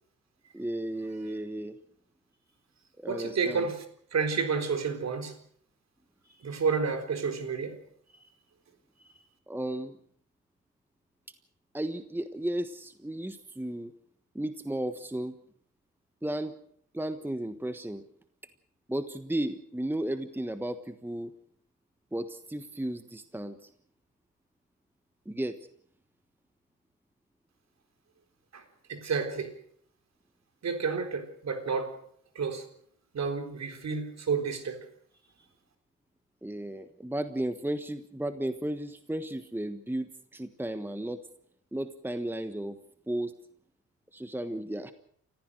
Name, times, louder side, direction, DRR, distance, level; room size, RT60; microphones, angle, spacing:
voice 1, 0.5-1.7 3.0-3.7 9.5-10.0 11.7-13.9 14.3-15.4 16.2-16.5 16.9-18.0 18.9-21.3 22.1-23.7 25.2-25.6 36.4-41.2 41.7-42.8 43.1-43.3 44.1-44.9, right 1 dB, 5° right, 10 dB, 1.4 m, -34 dB
voice 2, 3.1-3.8 4.1-5.4 6.4-7.8 28.5-28.6 28.9-29.5 30.6-31.9 32.4-32.6 33.1-34.9, right 5 dB, 50° right, 7 dB, 4.0 m, -30 dB
29.0 x 15.0 x 6.5 m, 0.64 s
cardioid pair, 75°, 33 cm